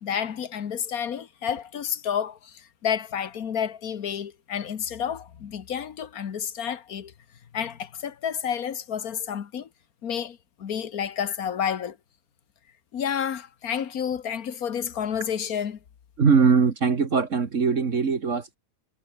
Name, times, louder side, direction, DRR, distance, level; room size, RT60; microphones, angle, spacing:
voice 1, 0.0-2.5 2.8-7.1 7.5-9.7 10.0-12.0 12.9-15.8, left 8 dB, 75° left, 1.7 m, -30 dB
voice 2, 16.2-18.6, right 5 dB, 55° right, 2.0 m, -21 dB
omnidirectional pair, 1.6 m